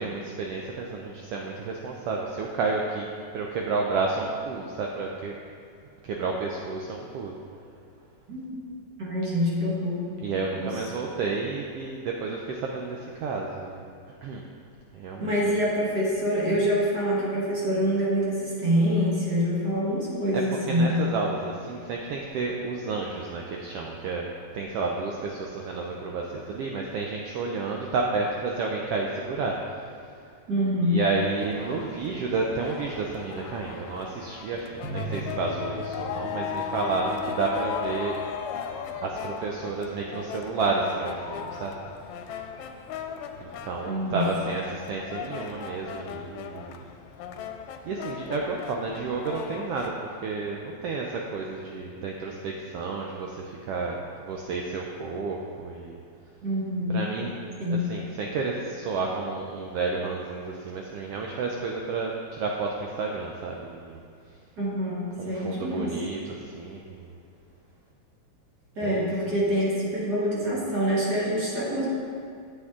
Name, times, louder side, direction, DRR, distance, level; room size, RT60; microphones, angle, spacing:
voice 1, 0.0-3.1 3.3-5.3 6.0-7.3 10.2-13.8 14.2-14.4 14.9-15.3 20.3-20.4 20.7-24.3 24.5-29.6 30.9-38.2 39.0-41.7 43.4-46.8 47.9-56.0 56.9-57.4 57.7-64.0 65.2-67.1 68.8-69.1, right 4 dB, 90° right, 0 dB, 1.3 m, -31 dB
voice 2, 9.0-10.1 10.6-10.8 15.2-20.9 30.5-31.0 43.9-44.3 56.4-57.0 57.6-57.8 64.6-65.9 68.7-71.9, equal, 45° right, -6 dB, 1.6 m, -26 dB
sound 1, 31.4-49.9, left 7 dB, 80° left, 1.8 m, -37 dB
sound 2, 34.8-40.0, right 1 dB, 70° right, 0.9 m, -41 dB
8.1 x 7.9 x 3.6 m, 2.3 s
omnidirectional pair, 3.3 m